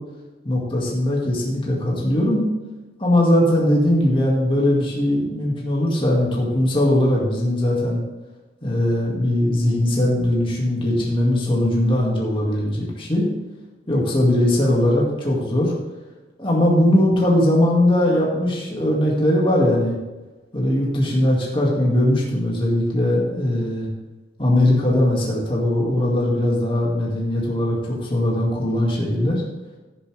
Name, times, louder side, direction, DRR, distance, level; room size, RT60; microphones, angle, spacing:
voice 1, 0.4-2.4 3.0-8.0 8.6-13.3 13.9-15.7 16.4-20.0 20.5-23.9 24.4-29.4, left 1 dB, 30° left, -3 dB, 2.1 m, -20 dB
16.0 x 7.2 x 3.4 m, 1.2 s
head